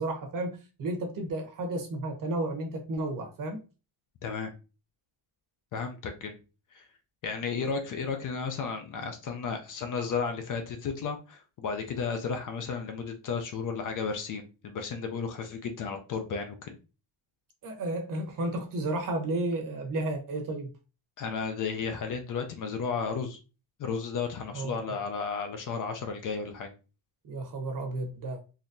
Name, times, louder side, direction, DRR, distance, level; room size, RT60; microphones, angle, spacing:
voice 1, 0.0-3.6 17.6-20.7 24.5-25.0 27.2-28.4, right 2 dB, 40° right, 3 dB, 0.9 m, -32 dB
voice 2, 5.7-6.3 6.7-6.8 7.2-16.8 21.2-23.4 23.8-26.7, left 5 dB, 40° left, 6 dB, 0.5 m, -33 dB
4.0 x 2.9 x 2.6 m, 0.32 s
cardioid pair, 180°, 48 cm